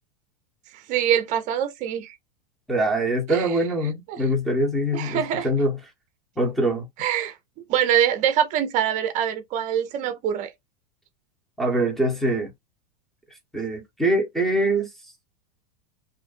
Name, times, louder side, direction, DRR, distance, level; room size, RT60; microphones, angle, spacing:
voice 1, 0.7-2.1 3.3-3.6 4.1-4.2 4.9-5.5 7.0-7.3 7.7-10.5, right 10 dB, 40° right, 0.6 m, -24 dB
voice 2, 2.7-5.8 6.4-6.9 11.6-12.5 13.5-14.9, right 1 dB, ahead, 1.0 m, -23 dB
2.5 x 2.4 x 2.5 m
hypercardioid pair, 115°, 20 cm